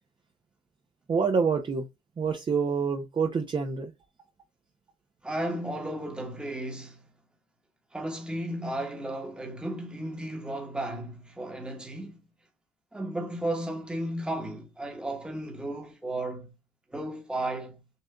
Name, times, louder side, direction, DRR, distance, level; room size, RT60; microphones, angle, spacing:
voice 1, 1.1-1.9 2.2-3.9, right 5 dB, 30° right, 0.6 m, -27 dB
voice 2, 5.2-7.0 7.9-12.2 12.9-16.5 16.9-17.8, right 1 dB, 5° right, 1.1 m, -34 dB
6.6 x 2.5 x 2.2 m
cardioid pair, 110°, 17 cm